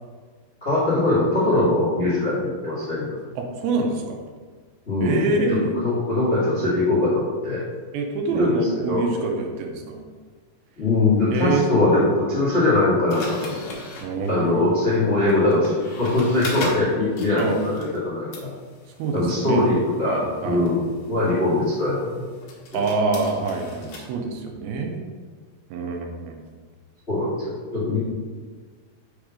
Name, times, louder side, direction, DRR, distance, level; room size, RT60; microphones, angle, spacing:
voice 1, 0.6-3.2 4.9-7.6 8.3-8.5 8.9-9.0 10.8-13.6 14.3-18.5 19.1-22.3 22.7-22.8 27.1-28.0, left 2 dB, 40° left, -10 dB, 0.9 m, -22 dB
voice 2, 3.4-4.2 5.0-5.8 7.9-10.0 11.3-11.7 14.0-14.7 17.3-17.6 18.9-19.6 20.1-20.7 22.7-25.0 25.7-26.4, right 3 dB, 85° right, 3 dB, 2.6 m, -26 dB
sound 1, 13.1-18.0 18.3-24.1, left 2 dB, 65° left, 1.9 m, -39 dB
6.5 x 3.5 x 4.9 m, 1.5 s
omnidirectional pair, 4.3 m